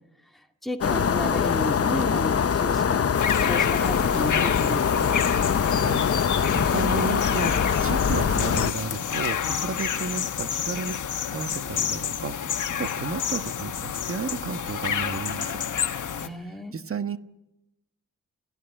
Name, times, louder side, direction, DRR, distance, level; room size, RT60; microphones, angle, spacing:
voice 1, 0.6-3.0 3.4-5.2 16.2-16.7, equal, ahead, 3 dB, 2.0 m, -32 dB
sound 1, 0.8-8.7, left 7 dB, 50° left, 0.9 m, -23 dB
sound 2, 3.1-16.3, left 8 dB, 70° left, 1.3 m, -29 dB
voice 2, 5.4-15.6 16.4-17.2, right 5 dB, 45° right, 10 dB, 1.3 m, -33 dB
29.5 x 16.5 x 9.0 m, 0.94 s
cardioid pair, 90°, 32 cm